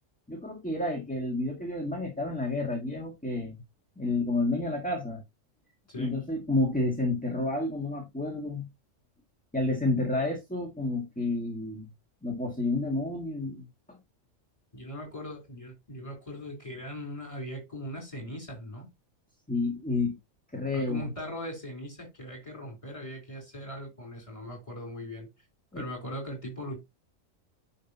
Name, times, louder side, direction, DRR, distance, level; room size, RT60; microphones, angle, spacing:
voice 1, 0.3-3.6 4.0-5.2 6.0-8.7 9.5-11.9 12.2-14.0 19.5-20.2 20.5-21.1 25.7-25.8, left 2 dB, 5° left, 1.6 m, -30 dB
voice 2, 5.9-6.2 14.7-18.9 20.7-25.3 25.7-26.8, equal, 25° left, 3.7 m, -40 dB
9.9 x 5.7 x 2.8 m
omnidirectional pair, 1.4 m